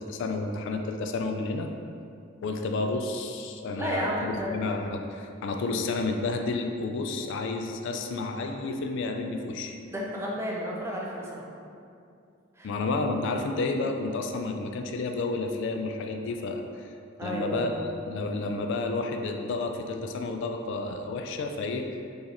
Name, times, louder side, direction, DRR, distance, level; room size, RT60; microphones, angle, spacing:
voice 1, 0.0-1.7 2.4-9.8 12.6-16.9 17.2-21.9, left 3 dB, 65° left, 5 dB, 0.3 m, -31 dB
voice 2, 3.7-4.5 9.9-11.5 12.6-12.7 17.2-17.8, right 1 dB, 15° right, -4 dB, 0.5 m, -32 dB
4.5 x 3.3 x 2.9 m, 2.4 s
head